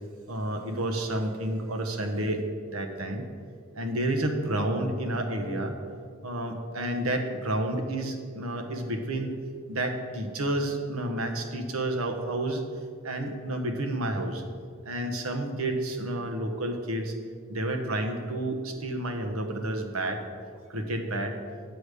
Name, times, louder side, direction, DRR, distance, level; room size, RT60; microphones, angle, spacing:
voice 1, 0.3-2.4 2.7-3.3 3.7-5.8 6.2-9.3 9.7-12.6 13.0-14.4 14.8-17.1 17.5-20.2 20.7-21.4, right 1 dB, 75° right, 4 dB, 1.0 m, -30 dB
8.3 x 4.9 x 6.6 m, 2.1 s
head